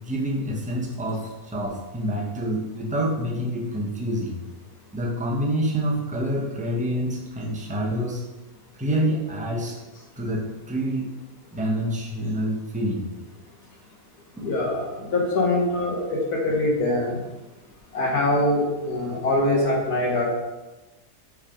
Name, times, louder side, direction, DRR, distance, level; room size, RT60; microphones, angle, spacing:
voice 1, 0.0-4.4 4.9-8.2 8.7-9.8 10.2-11.1 11.5-13.1 14.4-14.5, equal, 10° right, -2 dB, 0.6 m, -27 dB
voice 2, 14.4-17.2 17.9-20.3, left 1 dB, 80° left, -3 dB, 1.9 m, -23 dB
5.4 x 3.6 x 4.9 m, 1.1 s
omnidirectional pair, 1.6 m